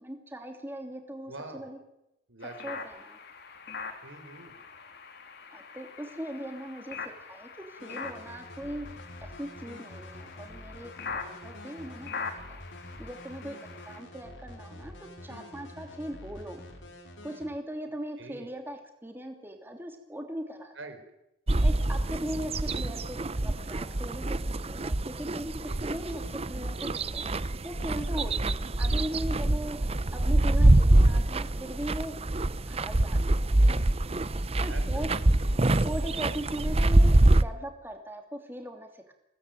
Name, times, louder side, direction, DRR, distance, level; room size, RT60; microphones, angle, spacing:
voice 1, 0.0-1.8 2.6-3.2 5.5-8.9 9.2-12.6 13.0-13.6 13.9-16.6 17.2-20.7 21.6-27.2 27.6-29.8 30.1-32.1 32.7-33.8 34.6-35.1 35.8-39.1, equal, 10° right, 4 dB, 2.8 m, -39 dB
voice 2, 1.3-1.7 2.3-2.8 4.0-4.6 15.3-15.5 18.2-18.5 20.7-21.0 25.6-26.4 34.7-35.1 35.4-35.8, right 2 dB, 85° right, 7 dB, 4.8 m, -45 dB
sound 1, 2.4-14.0, left 5 dB, 60° left, 2.9 m, -43 dB
sound 2, 7.8-17.5, left 1 dB, 85° left, 4.9 m, -47 dB
sound 3, 21.5-37.4, right 1 dB, 35° right, 0.8 m, -25 dB
23.0 x 17.5 x 9.3 m, 0.87 s
head